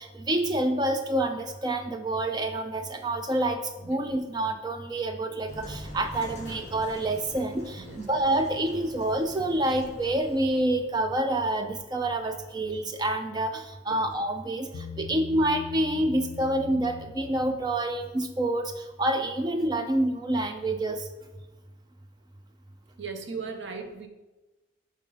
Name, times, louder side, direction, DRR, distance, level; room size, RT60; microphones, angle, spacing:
voice 1, 0.0-3.6 3.9-21.1, right 1 dB, 20° right, 6 dB, 0.3 m, -27 dB
sound 1, 5.5-12.7, left 1 dB, 35° left, 2.0 m, -45 dB
Bass guitar, 14.7-18.1, left 6 dB, 60° left, 0.3 m, -42 dB
voice 2, 23.0-24.1, right 4 dB, 65° right, 5 dB, 0.6 m, -37 dB
5.5 x 3.7 x 5.3 m, 1.1 s
head